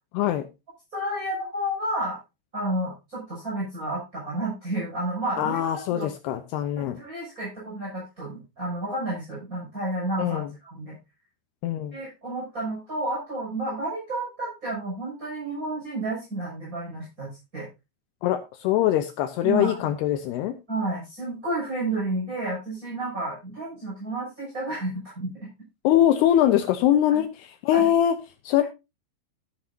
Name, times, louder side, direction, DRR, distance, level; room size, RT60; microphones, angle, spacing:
voice 1, 0.9-2.2 2.5-6.1 6.7-10.9 11.9-17.7 19.4-19.8 20.7-25.3 27.1-27.2 27.7-27.9, right 1 dB, 15° right, -6 dB, 6.7 m, -31 dB
voice 2, 5.4-7.0 10.2-10.5 11.6-12.0 18.2-20.5 25.8-28.2 28.5-28.6, left 11 dB, 80° left, 10 dB, 2.5 m, -22 dB
12.0 x 11.5 x 2.7 m, 0.25 s
omnidirectional pair, 5.3 m